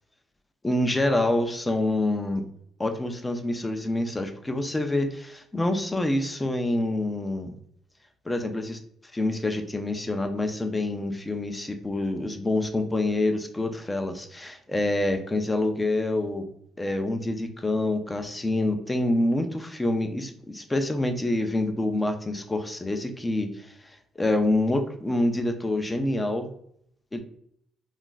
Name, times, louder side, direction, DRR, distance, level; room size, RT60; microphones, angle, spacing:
voice 1, 0.6-2.4 2.8-7.5 8.3-8.8 9.1-16.5 16.8-26.5 27.1-27.2, left 1 dB, 15° left, 6 dB, 0.4 m, -27 dB
2.4 x 2.2 x 3.8 m, 0.66 s
cardioid pair, 90°, 0 cm